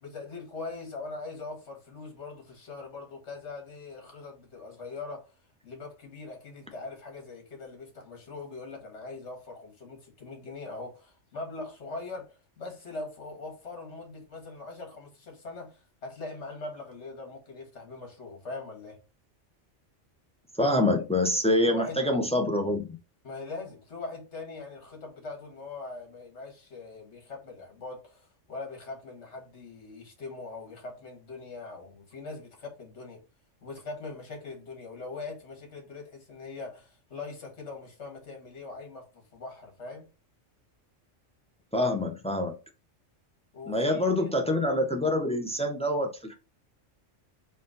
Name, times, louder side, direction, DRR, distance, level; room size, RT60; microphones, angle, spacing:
voice 1, 0.0-5.4 5.6-19.0 21.7-22.0 23.2-33.2 33.6-40.1 43.5-44.2, left 3 dB, 65° left, 1.9 m, -41 dB
voice 2, 20.6-23.0 41.7-42.5 43.7-46.3, left 1 dB, 10° left, 0.4 m, -26 dB
4.3 x 2.5 x 3.9 m
omnidirectional pair, 1.3 m